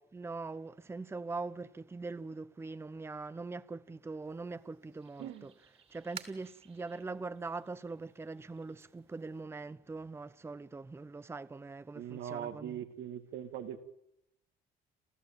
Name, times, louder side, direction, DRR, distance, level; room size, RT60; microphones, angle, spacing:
voice 1, 0.1-5.5 5.9-12.8, right 3 dB, 15° right, 0.8 m, -42 dB
sound 1, 4.2-9.4, right 6 dB, 40° right, 2.7 m, -55 dB
voice 2, 5.2-5.5 11.9-13.8, right 10 dB, 85° right, 2.6 m, -41 dB
29.0 x 14.5 x 9.1 m
cardioid pair, 110°, 17 cm